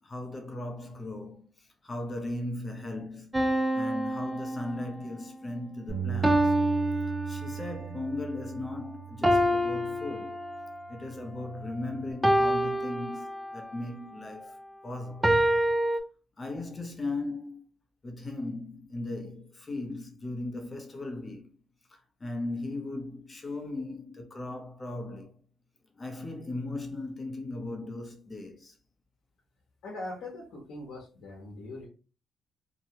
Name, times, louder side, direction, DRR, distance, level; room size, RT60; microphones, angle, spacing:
voice 1, 0.0-3.3 3.7-6.5 7.3-10.4 10.9-14.6 14.8-15.3 16.4-17.6 18.0-21.5 22.2-25.4 26.0-28.8, left 2 dB, 30° left, 0.8 m, -37 dB
sound 1, 3.3-5.1 6.2-7.9 9.2-10.9 12.2-13.7 15.2-16.0, equal, 10° right, 0.4 m, -27 dB
Bass guitar, 5.9-10.3 11.0-12.1, right 9 dB, 70° right, 0.9 m, -38 dB
voice 2, 29.8-31.9, left 2 dB, 70° left, 0.9 m, -41 dB
2.8 x 2.2 x 2.8 m
cardioid pair, 90°, 0 cm